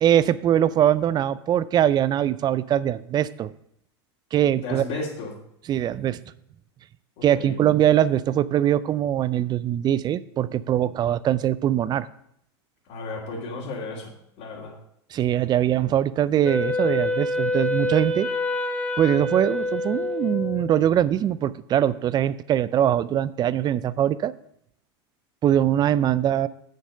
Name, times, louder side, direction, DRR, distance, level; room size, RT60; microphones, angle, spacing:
voice 1, 0.0-3.5 4.3-4.8 5.7-6.2 7.2-12.1 15.1-18.3 19.0-24.3 25.4-26.5, right 11 dB, 30° right, 17 dB, 0.4 m, -22 dB
voice 2, 4.6-5.3 7.4-7.6 12.9-14.1 14.4-14.7, left 3 dB, 55° left, -8 dB, 3.1 m, -33 dB
Wind instrument woodwind instrument, 16.4-20.8, left 2 dB, 10° left, 1.1 m, -26 dB
8.2 x 6.6 x 5.5 m, 0.72 s
hypercardioid pair, 105°, 14 cm